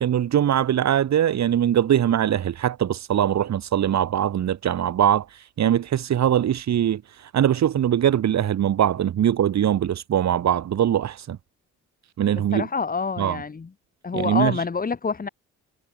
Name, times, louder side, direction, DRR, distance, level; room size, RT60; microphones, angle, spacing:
voice 1, 0.0-11.4 12.2-12.7 13.2-13.4 14.1-14.6, right 10 dB, 65° right, 3.3 m, -22 dB
voice 2, 12.5-13.7 14.0-15.3, left 5 dB, 30° left, 2.0 m, -27 dB
cardioid pair, 90°, 30 cm